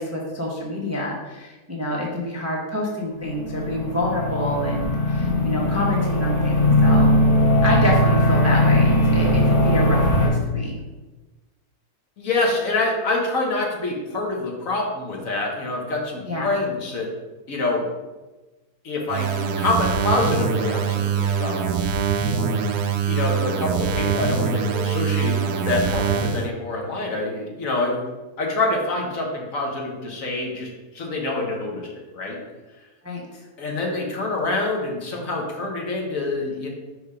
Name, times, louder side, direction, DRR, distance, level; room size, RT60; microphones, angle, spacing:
voice 1, 0.0-7.1 7.6-10.8 16.3-16.5 33.0-33.4, left 1 dB, 15° right, -2 dB, 0.6 m, -27 dB
sound 1, 3.2-10.3, left 1 dB, 20° left, 1.3 m, -19 dB
voice 2, 12.2-17.1 17.5-17.9 18.8-19.3 19.6-21.6 23.0-28.0 28.4-32.4 33.6-36.7, left 2 dB, 55° left, 0 dB, 1.5 m, -26 dB
sound 2, 19.1-26.5, right 6 dB, 75° right, 1.2 m, -23 dB
5.0 x 4.8 x 4.9 m, 1.2 s
omnidirectional pair, 1.8 m